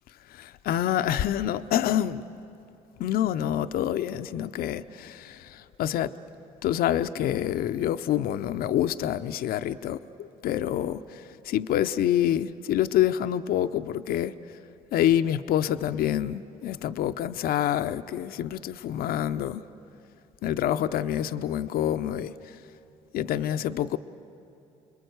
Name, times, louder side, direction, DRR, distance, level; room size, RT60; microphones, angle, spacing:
voice 1, 0.3-2.3 3.0-6.2 6.6-14.6 14.9-19.6 20.4-22.6 23.1-24.0, left 11 dB, 75° left, 0.6 m, -27 dB
29.5 x 21.5 x 8.0 m
supercardioid pair, 70°, 16 cm